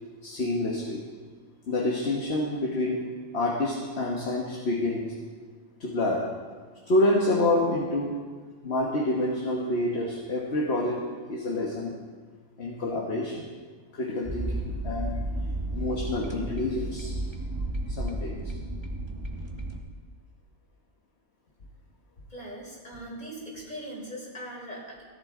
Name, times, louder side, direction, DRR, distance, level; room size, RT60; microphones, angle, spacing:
voice 1, 0.2-1.0 1.7-3.0 3.3-5.1 5.8-6.2 6.9-8.2 8.6-11.9 12.6-13.5 13.9-15.2 15.7-17.2 17.9-18.5, left 1 dB, 45° left, -1 dB, 1.5 m, -28 dB
sound 1, 14.2-19.8, right 1 dB, 20° right, 1.2 m, -33 dB
voice 2, 22.3-25.0, equal, 30° left, -4 dB, 4.0 m, -40 dB
16.5 x 11.0 x 3.7 m, 1.5 s
omnidirectional pair, 1.6 m